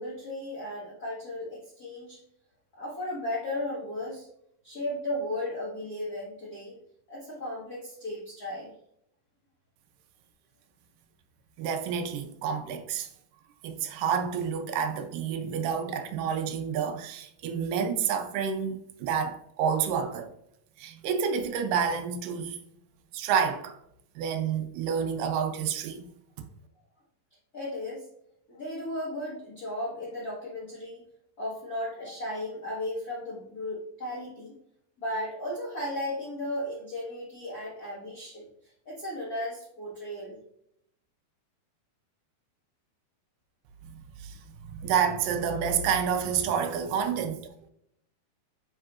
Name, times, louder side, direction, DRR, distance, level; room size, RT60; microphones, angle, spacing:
voice 1, 0.0-2.2 2.7-4.3 4.6-6.8 7.1-8.7 27.5-28.0 28.5-31.0 31.4-34.6 35.0-38.5 38.8-40.4, left 1 dB, 45° left, 1.2 m, -35 dB
voice 2, 11.6-13.1 13.6-20.3 20.8-22.6 23.1-23.8 24.2-26.1 26.4-26.5 43.8-47.5, right 7 dB, 80° right, 2.1 m, -29 dB
8.8 x 4.5 x 2.4 m
omnidirectional pair, 4.2 m